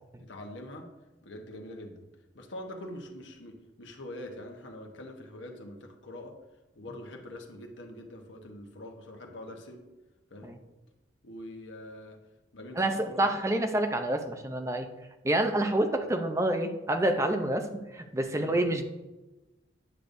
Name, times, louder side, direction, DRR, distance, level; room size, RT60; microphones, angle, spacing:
voice 1, 0.2-0.9 1.2-2.0 2.3-6.4 6.7-9.8 10.3-10.5 11.2-12.2 12.5-13.3 18.3-18.6, left 1 dB, 75° left, 3 dB, 1.1 m, -44 dB
voice 2, 12.8-14.9 15.2-18.8, right 1 dB, 15° right, 6 dB, 0.5 m, -28 dB
9.6 x 6.6 x 2.6 m, 1.1 s
head